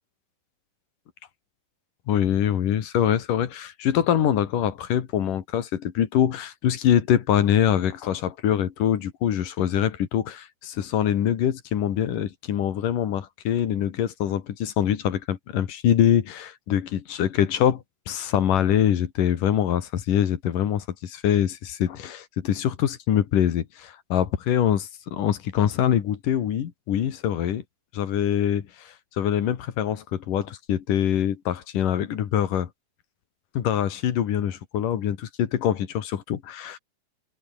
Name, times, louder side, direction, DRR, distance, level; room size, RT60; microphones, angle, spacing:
voice 1, 2.1-27.6 27.9-32.7 33.6-36.8, left 10 dB, 85° left, 3.6 m, -24 dB
omnidirectional pair, 3.7 m